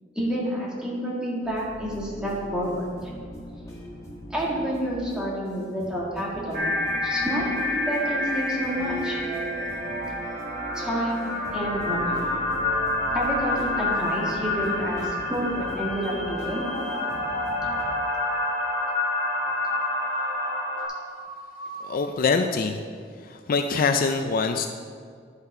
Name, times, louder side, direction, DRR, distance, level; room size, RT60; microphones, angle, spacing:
voice 1, 0.2-3.1 4.3-6.7 7.0-9.2 10.7-12.2 13.1-16.7 17.8-17.9, equal, 5° right, -5 dB, 2.0 m, -29 dB
sound 1, 1.4-17.8, equal, 15° left, 1.8 m, -42 dB
sound 2, 6.5-20.8, left 2 dB, 50° right, 2.5 m, -28 dB
sound 3, 8.0-22.1, right 3 dB, 30° right, 0.7 m, -38 dB
voice 2, 21.8-22.8 23.2-24.7, left 4 dB, 50° left, 6 dB, 0.4 m, -24 dB
11.0 x 5.6 x 4.9 m, 2.1 s
head